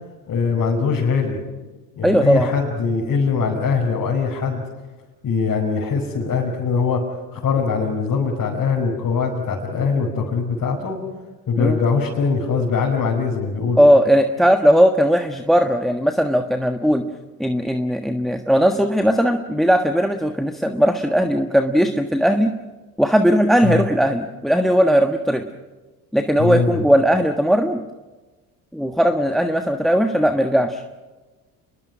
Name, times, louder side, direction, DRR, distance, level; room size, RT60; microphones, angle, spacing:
voice 1, 0.3-1.4 2.0-4.6 5.2-7.0 7.3-11.0 11.5-13.8 23.6-23.8 26.4-26.8, left 5 dB, 45° left, -4 dB, 5.5 m, -22 dB
voice 2, 2.0-2.5 11.6-11.8 13.8-17.0 17.4-22.5 23.0-25.4 26.1-27.8 28.7-30.8, equal, ahead, 7 dB, 1.4 m, -18 dB
29.0 x 21.5 x 6.2 m, 1.2 s
hypercardioid pair, 60°, 43 cm